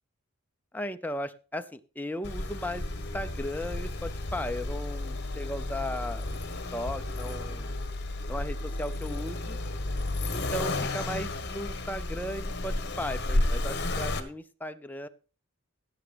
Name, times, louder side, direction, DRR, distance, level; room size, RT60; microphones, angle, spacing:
voice 1, 0.7-6.4 6.7-7.8 8.3-9.6 10.3-15.1, left 1 dB, 10° left, 9 dB, 0.5 m, -36 dB
Accelerating revving vroom, 2.2-14.2, left 2 dB, 50° left, 1.3 m, -32 dB
17.0 x 7.7 x 3.4 m, 0.36 s
head